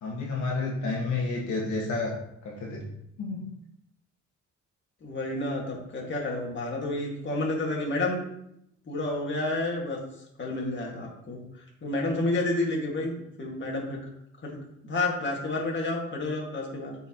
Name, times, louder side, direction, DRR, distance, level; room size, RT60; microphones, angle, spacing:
voice 1, 0.0-2.9 3.2-3.5, left 3 dB, 70° left, -3 dB, 1.6 m, -30 dB
voice 2, 5.0-8.2 8.9-10.0 10.4-14.0 14.4-14.6 14.8-17.0, left 2 dB, 40° left, -2 dB, 2.0 m, -30 dB
8.2 x 4.6 x 3.0 m, 0.77 s
cardioid pair, 90°, 30 cm